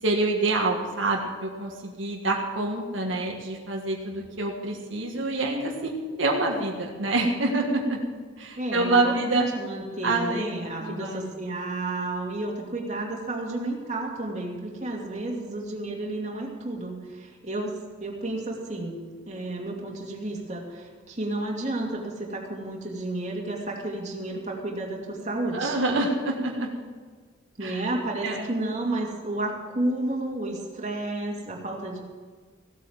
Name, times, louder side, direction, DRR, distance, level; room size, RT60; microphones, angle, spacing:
voice 1, 0.0-8.0 8.4-9.4 10.0-11.3 25.5-26.7 27.6-27.8 28.2-28.5, right 2 dB, 80° right, 0 dB, 1.8 m, -27 dB
voice 2, 8.5-25.7 27.6-32.0, right 2 dB, 35° right, -2 dB, 2.6 m, -31 dB
16.5 x 8.6 x 7.3 m, 1.5 s
head